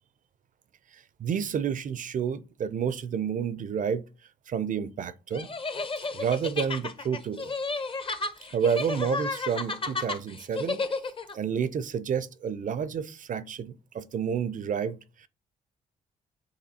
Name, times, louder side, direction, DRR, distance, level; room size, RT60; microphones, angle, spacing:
voice 1, 0.9-4.0 4.5-5.5 6.1-7.5 8.5-10.8 11.3-15.3, right 7 dB, 45° right, 0.5 m, -30 dB
sound 1, 5.3-11.3, left 3 dB, 30° left, 0.7 m, -32 dB
6.7 x 2.7 x 2.8 m
supercardioid pair, 55°, 18 cm